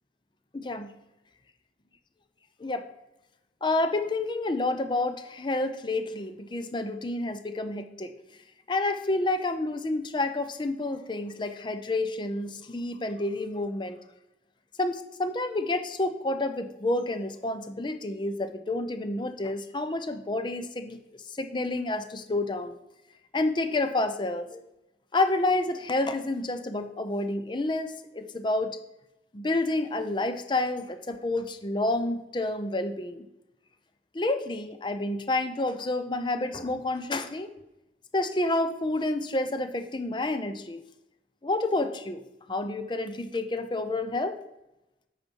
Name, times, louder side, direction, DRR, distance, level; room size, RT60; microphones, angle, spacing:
voice 1, 0.5-0.9 2.6-2.9 3.6-8.1 8.7-14.0 14.8-21.0 21.4-22.7 23.3-24.6 25.1-28.8 29.3-33.3 34.1-37.5 38.1-40.8 41.4-42.2 42.5-44.4, left 2 dB, 25° left, 9 dB, 0.5 m, -29 dB
8.1 x 5.8 x 4.5 m, 0.92 s
head